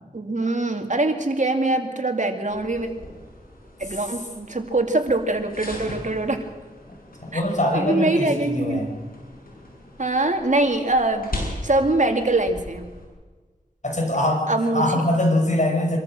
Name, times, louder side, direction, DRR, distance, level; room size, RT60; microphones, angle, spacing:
voice 1, 0.1-2.9 3.8-6.4 7.3-7.4 7.7-8.9 10.0-11.3 11.6-12.9 14.5-14.8, right 2 dB, 55° right, 5 dB, 2.6 m, -23 dB
sound 1, 2.5-13.0, left 1 dB, 70° left, 7.4 m, -39 dB
voice 2, 7.2-8.9 13.8-14.5 14.7-16.0, left 1 dB, 55° left, 1 dB, 5.7 m, -23 dB
25.0 x 13.5 x 7.7 m, 1.3 s
wide cardioid pair, 45°, 15 cm